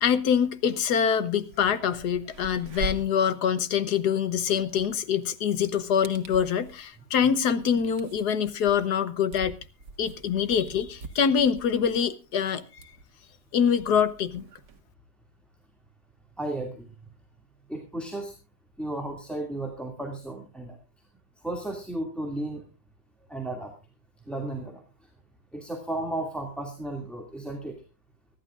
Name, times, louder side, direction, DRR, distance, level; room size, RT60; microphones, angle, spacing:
voice 1, 0.0-9.6 10.0-12.8 13.5-14.4, left 7 dB, 70° left, 1.5 m, -25 dB
sound 1, 1.0-1.1 1.4-14.8, right 2 dB, 90° right, 2.0 m, -43 dB
voice 2, 16.4-16.9 17.7-18.3 18.8-20.8 21.4-22.6 23.3-23.7 24.3-24.8 25.5-27.8, right 1 dB, ahead, 2.2 m, -34 dB
24.0 x 11.5 x 2.4 m
omnidirectional pair, 1.8 m